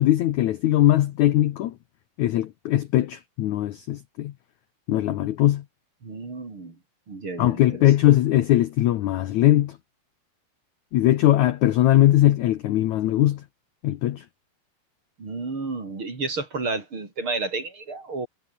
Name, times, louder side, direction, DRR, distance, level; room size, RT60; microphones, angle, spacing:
voice 1, 0.0-1.7 2.2-4.3 4.9-5.6 7.4-9.8 10.9-13.4 13.8-14.2, left 14 dB, 75° left, 1.7 m, -20 dB
voice 2, 6.0-6.8 7.1-7.6 15.2-18.3, right 3 dB, 30° right, 4.8 m, -31 dB
omnidirectional pair, 4.7 m